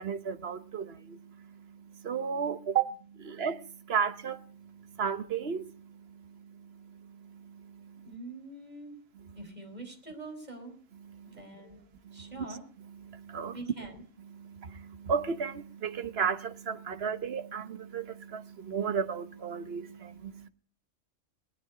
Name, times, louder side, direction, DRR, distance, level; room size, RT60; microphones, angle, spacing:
voice 1, 0.0-8.1 9.2-9.4 11.0-11.4 12.0-12.5 12.8-13.6 14.3-20.5, right 6 dB, 55° right, 1.2 m, -35 dB
voice 2, 8.0-8.9 9.3-10.8 11.3-12.6 13.5-14.0, right 2 dB, 30° right, 4.8 m, -44 dB
19.5 x 12.0 x 5.1 m
omnidirectional pair, 1.3 m